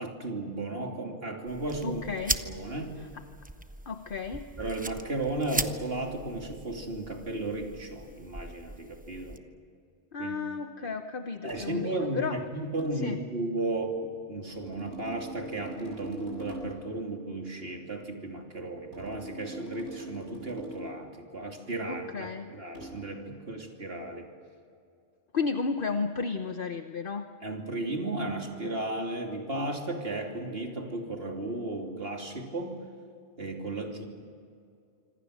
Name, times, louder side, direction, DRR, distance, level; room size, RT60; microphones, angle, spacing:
voice 1, 0.0-2.0 2.4-3.0 4.6-9.4 10.2-10.4 11.4-24.3 27.4-32.8 33.4-34.1, right 2 dB, 55° right, 2 dB, 3.2 m, -34 dB
sound 1, 1.5-9.4, right 1 dB, 10° right, 0.7 m, -39 dB
voice 2, 1.8-2.4 3.9-4.5 10.1-12.4 13.0-13.2 21.9-22.5 25.3-27.3, left 4 dB, 50° left, 7 dB, 1.1 m, -33 dB
sound 2, 11.5-11.7 12.8-13.0 14.5-16.8 18.9-21.0 22.7-23.0, right 1 dB, 85° right, 7.7 m, -42 dB
26.0 x 25.5 x 6.5 m, 2.4 s
omnidirectional pair, 1.2 m